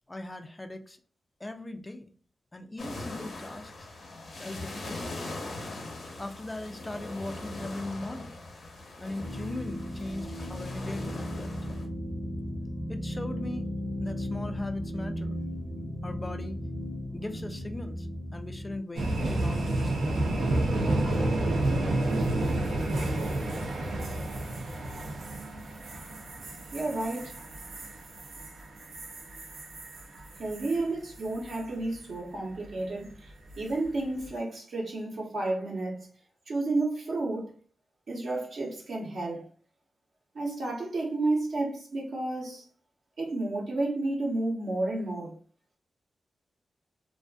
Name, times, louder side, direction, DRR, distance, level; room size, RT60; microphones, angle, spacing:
voice 1, 0.1-1.0 1.4-2.1 2.5-3.7 4.4-5.0 6.2-8.4 9.0-11.6 12.9-13.7 14.0-15.3 16.0-16.6 17.1-18.1 18.3-20.1, left 1 dB, 20° left, 0.3 m, -39 dB
sound 1, 2.8-11.9, left 2 dB, 60° left, 0.7 m, -41 dB
sound 2, 9.2-18.8, left 1 dB, 35° right, 0.8 m, -36 dB
sound 3, 19.0-30.8 31.1-31.6 33.5-33.9, right 1 dB, 85° right, 0.6 m, -30 dB
voice 2, 26.7-27.3 30.4-33.3 33.6-36.1 36.5-37.5 38.1-39.5 40.3-42.6 43.2-45.3, right 2 dB, 70° right, 0.9 m, -31 dB
2.5 x 2.5 x 2.3 m
cardioid pair, 85°, 0 cm